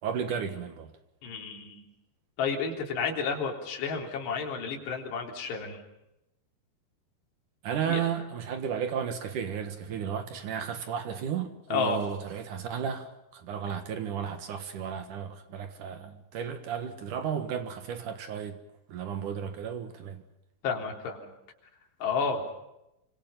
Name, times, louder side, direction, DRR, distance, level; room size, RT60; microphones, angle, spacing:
voice 1, 0.0-0.9 7.6-18.6 18.9-20.2, right 8 dB, 65° right, 2.2 m, -33 dB
voice 2, 1.2-1.8 2.4-5.8 7.9-8.1 11.7-12.0 20.6-21.2 22.0-22.5, left 5 dB, 60° left, 5.6 m, -31 dB
27.0 x 25.5 x 5.7 m
omnidirectional pair, 5.7 m